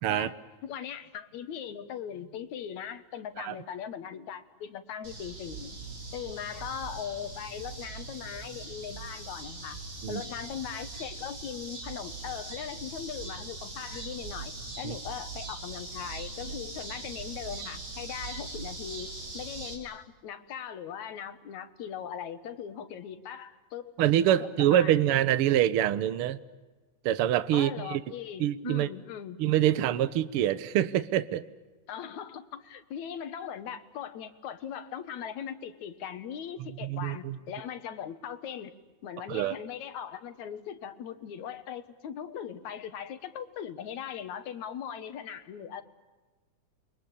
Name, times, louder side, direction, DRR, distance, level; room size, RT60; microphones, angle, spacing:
voice 1, 0.6-5.8 6.1-9.8 10.1-23.9 24.3-25.0 27.5-29.4 31.9-38.7 39.0-45.8, left 8 dB, 70° left, 10 dB, 2.7 m, -39 dB
sound 1, 5.0-19.7, right 3 dB, 40° right, 5.3 m, -41 dB
voice 2, 24.0-26.4 27.0-28.0 28.4-28.9 29.4-31.4 36.8-37.4 39.3-39.6, right 12 dB, 65° right, 14 dB, 1.5 m, -25 dB
29.0 x 23.0 x 8.6 m, 1.3 s
omnidirectional pair, 3.4 m